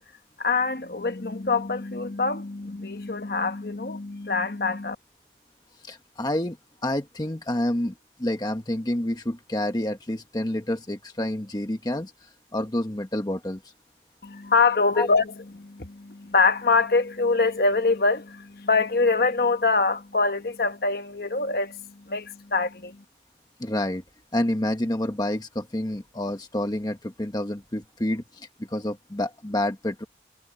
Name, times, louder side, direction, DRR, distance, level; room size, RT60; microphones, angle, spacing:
voice 1, 0.4-5.0 14.2-23.0, left 4 dB, 55° left, 1.3 m, -24 dB
voice 2, 5.8-6.6 6.8-7.9 8.2-13.7 14.9-15.1 23.6-24.0 24.3-30.0, left 1 dB, 20° left, 1.1 m, -28 dB
head